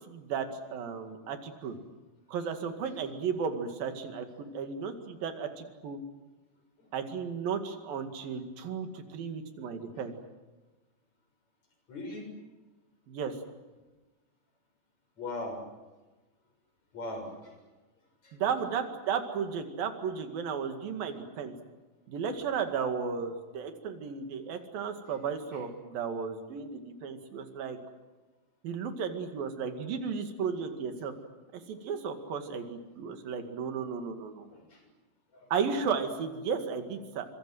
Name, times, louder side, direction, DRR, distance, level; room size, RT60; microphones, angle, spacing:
voice 1, 0.1-1.8 2.3-6.0 6.9-10.2 13.1-13.4 18.4-21.5 22.1-27.8 28.6-31.1 31.5-34.5 35.5-37.3, right 6 dB, 75° right, 6 dB, 4.0 m, -34 dB
voice 2, 11.9-12.3 15.2-15.6 16.9-17.5 18.2-18.4 31.8-31.9 34.5-34.8 35.3-35.5, left 2 dB, 50° left, 5 dB, 7.6 m, -39 dB
26.5 x 25.5 x 7.9 m, 1.2 s
omnidirectional pair, 4.1 m